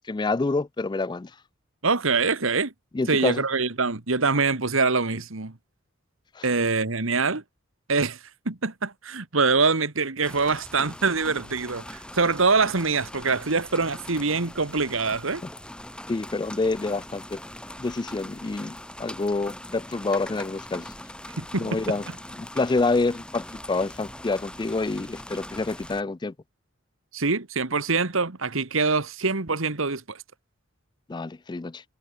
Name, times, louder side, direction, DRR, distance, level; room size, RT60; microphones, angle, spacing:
voice 1, 0.1-1.3 2.9-3.4 6.4-6.5 16.1-17.4 17.8-20.9 21.6-22.0 22.4-26.3 31.1-31.8, left 3 dB, 20° left, 0.4 m, -27 dB
voice 2, 1.8-2.7 3.1-5.5 6.4-7.4 7.9-8.2 8.4-15.4 21.4-21.8 27.1-30.2, right 4 dB, 70° right, 1.7 m, -24 dB
sound 1, 10.2-26.0, left 1 dB, 5° left, 3.5 m, -41 dB
head